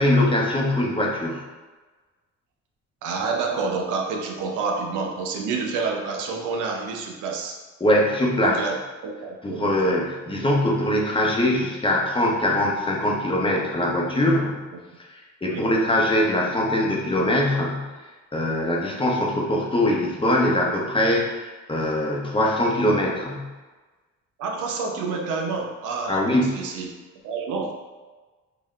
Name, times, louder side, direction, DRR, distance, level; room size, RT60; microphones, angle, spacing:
voice 1, 0.0-1.4 7.8-8.6 9.4-14.6 15.1-17.9 18.3-23.5 26.1-26.6, left 1 dB, 15° left, -2 dB, 0.9 m, -22 dB
voice 2, 3.0-7.6 8.4-8.7 9.0-9.8 15.4-15.7 24.4-26.9 27.2-27.7, right 4 dB, 85° right, 2 dB, 0.7 m, -28 dB
5.4 x 2.8 x 2.4 m, 1.3 s
cardioid pair, 90°, 30 cm